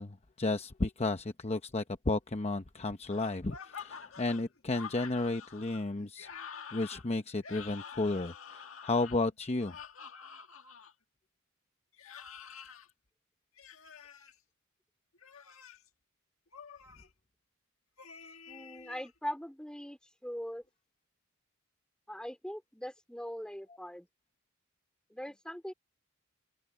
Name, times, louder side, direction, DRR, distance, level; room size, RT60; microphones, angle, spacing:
voice 1, 0.0-6.3 6.7-9.8, left 2 dB, 30° left, 0.8 m, -33 dB
sound 1, 3.1-10.9 11.9-12.9 13.6-14.3 15.1-15.9 16.5-17.1 18.0-19.1, left 6 dB, 75° left, 1.8 m, -48 dB
voice 2, 18.5-20.6 22.1-24.1 25.1-25.7, equal, 5° left, 3.4 m, -41 dB
open air
head